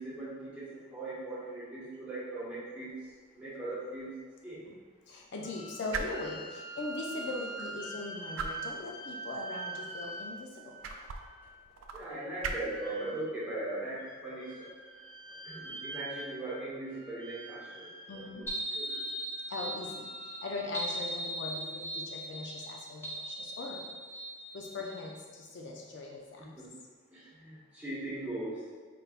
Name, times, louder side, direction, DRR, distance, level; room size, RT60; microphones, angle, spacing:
voice 1, 0.0-3.0 3.3-4.1 4.4-4.7 11.9-14.7 15.4-18.3 18.7-19.1 26.4-26.7 27.1-28.6, right 2 dB, 5° right, -10 dB, 1.2 m, -39 dB
sound 1, 2.9-16.5, right 4 dB, 75° right, 0.4 m, -45 dB
voice 2, 5.1-10.7 18.1-18.5 19.5-20.1 20.4-23.8 24.5-26.4, left 3 dB, 60° left, -1 dB, 0.4 m, -40 dB
sound 2, 5.4-11.6 12.7-13.5 14.0-16.6 16.8-18.4 18.9-20.9, right 2 dB, 40° left, 1.0 m, -45 dB
sound 3, 18.5-25.1, right 1 dB, 10° left, 0.6 m, -39 dB
4.4 x 3.4 x 2.4 m, 1.5 s
head